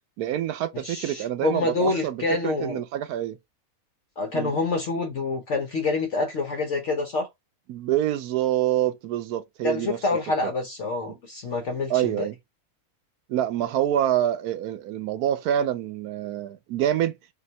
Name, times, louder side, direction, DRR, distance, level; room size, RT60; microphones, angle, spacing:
voice 1, 0.2-3.4 4.3-4.5 7.7-10.0 10.4-10.5 11.9-12.3 13.3-17.1, right 11 dB, 90° right, 1.2 m, -26 dB
voice 2, 0.8-2.8 4.2-7.3 9.6-12.3, left 3 dB, 60° left, 1.0 m, -27 dB
4.4 x 3.2 x 2.8 m
omnidirectional pair, 1.6 m